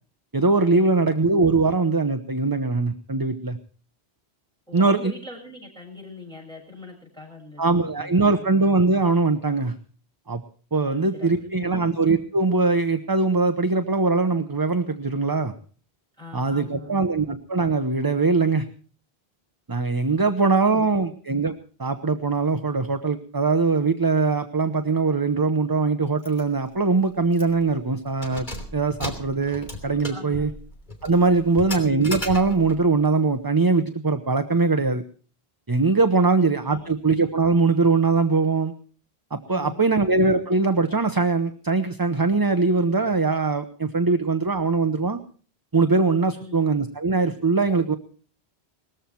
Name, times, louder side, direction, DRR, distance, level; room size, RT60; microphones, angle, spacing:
voice 1, 0.3-3.6 4.7-5.1 7.6-9.7 10.3-10.4 10.7-15.5 16.3-18.7 19.7-21.5 21.8-28.5 28.7-30.5 31.0-35.0 35.7-38.7 39.3-45.2 45.7-48.0, right 3 dB, 20° right, 8 dB, 0.8 m, -21 dB
voice 2, 4.7-8.4 10.8-11.8 16.2-17.0 20.2-21.0 30.1-30.5 31.3-31.7 36.6-36.9 39.5-40.1 46.3-46.5, left 3 dB, 5° left, 0 dB, 6.4 m, -43 dB
Keys jangling, 26.2-26.4 26.8-26.9 27.3-27.7 28.1-32.8, left 1 dB, 45° left, 3.3 m, -36 dB
20.0 x 14.5 x 4.5 m, 0.43 s
omnidirectional pair, 1.1 m